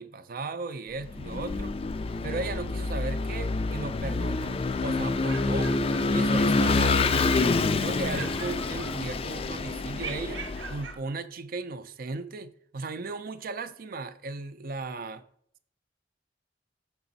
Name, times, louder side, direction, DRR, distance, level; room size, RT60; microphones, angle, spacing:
voice 1, 0.0-1.8 2.2-5.8 6.1-15.2, right 3 dB, 50° right, 0.5 m, -36 dB
Vehicle / Engine, 1.0-10.9, left 3 dB, 30° left, 0.3 m, -27 dB
sound 1, 5.2-6.7 7.0-7.8 8.1-9.4 10.0-11.1, right 6 dB, 85° right, 0.7 m, -43 dB
6.7 x 5.9 x 4.0 m
head